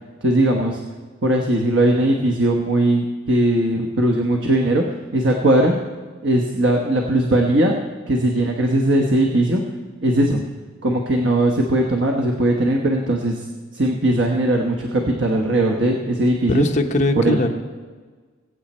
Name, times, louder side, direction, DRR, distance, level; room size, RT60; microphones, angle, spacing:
voice 1, 0.2-0.8 1.2-4.8 5.1-5.7 6.2-7.8 8.1-9.6 10.0-10.4 10.8-13.5 13.7-16.7 17.1-17.5, right 1 dB, 65° right, 1 dB, 1.2 m, -19 dB
voice 2, 16.5-17.5, left 1 dB, 40° left, 3 dB, 1.0 m, -20 dB
21.5 x 8.6 x 4.4 m, 1.4 s
head